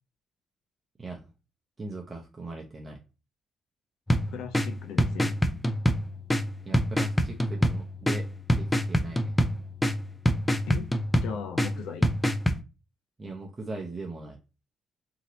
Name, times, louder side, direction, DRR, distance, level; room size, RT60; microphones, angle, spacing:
voice 1, 1.0-1.3 1.8-3.0 6.6-9.4 13.2-14.4, right 3 dB, 25° right, 0.6 m, -40 dB
sound 1, 4.1-12.6, equal, 10° left, 0.4 m, -27 dB
voice 2, 4.3-5.4 10.7-10.9 11.2-12.1, left 7 dB, 90° left, 0.4 m, -38 dB
3.0 x 2.8 x 2.7 m
cardioid pair, 90°, 0 cm